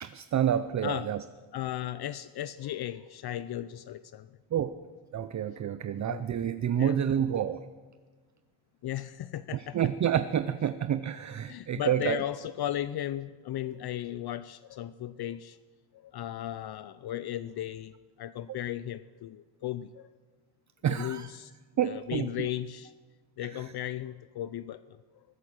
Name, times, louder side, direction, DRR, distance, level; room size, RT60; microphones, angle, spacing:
voice 1, 0.0-1.2 4.5-4.7 5.1-7.6 9.5-12.2 20.8-21.3 21.8-22.5 23.4-23.6, right 9 dB, 40° right, 12 dB, 0.5 m, -29 dB
voice 2, 1.5-4.4 6.0-6.2 6.8-7.0 8.8-9.8 11.4-15.6 15.9-17.9 18.2-20.1 20.9-21.5 21.8-22.9 23.4-25.2, left 12 dB, 60° left, 15 dB, 0.5 m, -36 dB
20.5 x 9.7 x 6.3 m, 1.4 s
cardioid pair, 110°, 45 cm